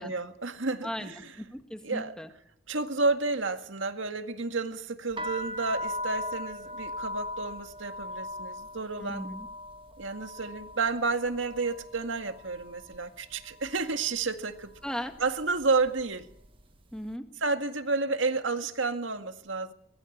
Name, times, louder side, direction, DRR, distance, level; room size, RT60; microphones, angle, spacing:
voice 1, 0.0-1.3 1.8-2.2 2.7-9.3 10.0-14.7 15.2-16.3 17.4-19.7, right 3 dB, 75° right, 2.0 m, -31 dB
voice 2, 0.8-2.3 9.0-9.5 14.8-15.1 16.9-17.2, equal, 5° left, 1.9 m, -37 dB
sound 1, 5.1-13.0 13.3-14.0 14.6-14.9 15.1-16.6, left 1 dB, 25° right, 1.5 m, -39 dB
23.5 x 21.5 x 7.4 m
head